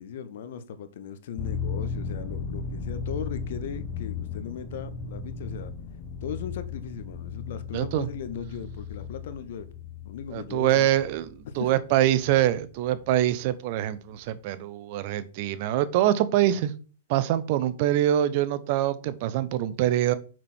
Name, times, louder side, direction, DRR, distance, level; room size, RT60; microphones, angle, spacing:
voice 1, 0.0-5.7 6.2-9.7 10.0-10.9 11.4-11.7, left 7 dB, 60° left, 12 dB, 1.0 m, -38 dB
sound 1, 1.4-12.7 13.0-13.1, left 5 dB, 35° left, 1.0 m, -36 dB
voice 2, 7.7-8.1 10.3-16.7 17.1-20.1, right 12 dB, 50° right, 15 dB, 0.8 m, -24 dB
6.2 x 6.1 x 4.4 m, 0.37 s
hypercardioid pair, 120°, 0 cm